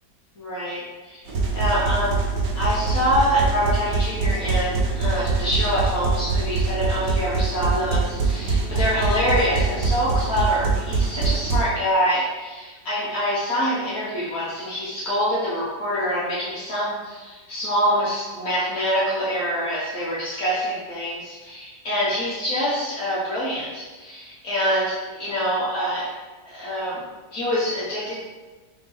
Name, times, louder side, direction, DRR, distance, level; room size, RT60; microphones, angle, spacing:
voice 1, 0.4-2.3 2.6-26.1 26.5-27.1 27.3-28.2, equal, 60° left, -7 dB, 1.1 m, -25 dB
sound 1, 1.3-11.6, right 4 dB, 65° right, 1.0 m, -23 dB
4.6 x 3.5 x 2.9 m, 1.3 s
omnidirectional pair, 1.9 m